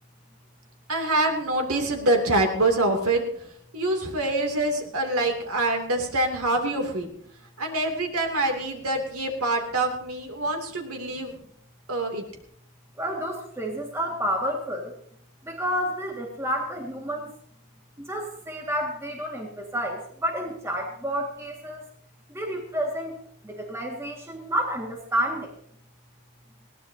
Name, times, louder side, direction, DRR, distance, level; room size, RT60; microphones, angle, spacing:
voice 1, 0.9-3.3 3.7-7.1 7.6-11.3 11.9-12.2, right 2 dB, 80° right, 3 dB, 2.7 m, -25 dB
voice 2, 13.0-14.9 15.5-17.3 18.0-21.8 22.3-25.5, equal, 10° right, 0 dB, 1.9 m, -30 dB
20.5 x 17.0 x 2.8 m, 0.66 s
head